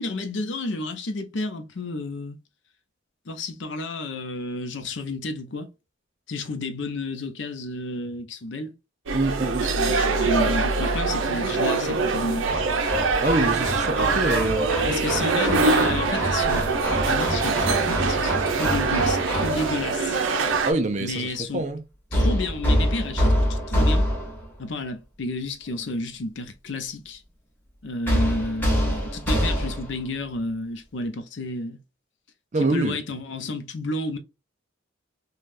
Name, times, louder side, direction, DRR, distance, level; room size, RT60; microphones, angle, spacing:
voice 1, 0.0-2.4 3.3-5.7 6.3-8.7 9.8-12.5 14.9-16.7 17.1-20.2 20.5-20.6 21.0-21.7 22.1-24.1 24.6-27.2 27.8-31.8 32.6-34.2, left 2 dB, 65° left, 0.5 m, -31 dB
voice 2, 9.1-9.7 13.2-14.9 20.6-21.8 32.5-33.0, right 2 dB, 35° right, 0.4 m, -25 dB
sound 1, 9.1-20.7, right 4 dB, 75° right, 0.6 m, -23 dB
Hammer, 12.5-19.9 22.1-24.5 28.1-30.0, equal, 10° left, 0.9 m, -26 dB
3.3 x 2.3 x 2.5 m
head